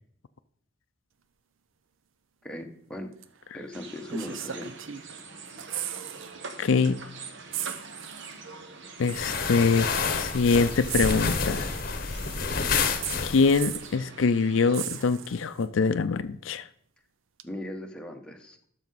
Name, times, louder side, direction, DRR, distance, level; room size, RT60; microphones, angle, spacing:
voice 1, 2.4-3.1 3.5-4.7 17.4-18.6, left 1 dB, 5° left, 1.0 m, -38 dB
sound 1, 3.2-3.4 4.1-5.2 5.5-6.3 6.6-6.8 7.5-8.4 9.4-9.5 10.9-11.9 13.0-14.0 14.7-15.6 17.4-17.5, right 11 dB, 80° right, 0.6 m, -36 dB
sound 2, 3.7-14.9, right 4 dB, 65° right, 1.0 m, -44 dB
voice 2, 6.6-7.0 9.0-9.9 10.2-11.7 13.2-16.7, left 4 dB, 75° left, 0.5 m, -24 dB
sound 3, 9.1-13.7, left 5 dB, 50° left, 0.9 m, -29 dB
12.0 x 6.5 x 4.0 m
head